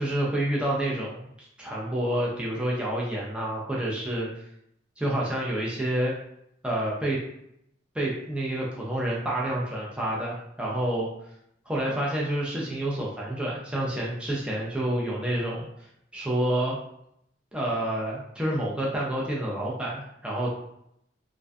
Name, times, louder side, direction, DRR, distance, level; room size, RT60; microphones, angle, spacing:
voice 1, 0.0-4.3 5.0-6.1 6.6-7.2 7.9-11.1 11.7-15.7 16.1-16.8 17.5-20.5, right 1 dB, 5° right, -5 dB, 0.4 m, -28 dB
2.4 x 2.2 x 2.3 m, 0.75 s
head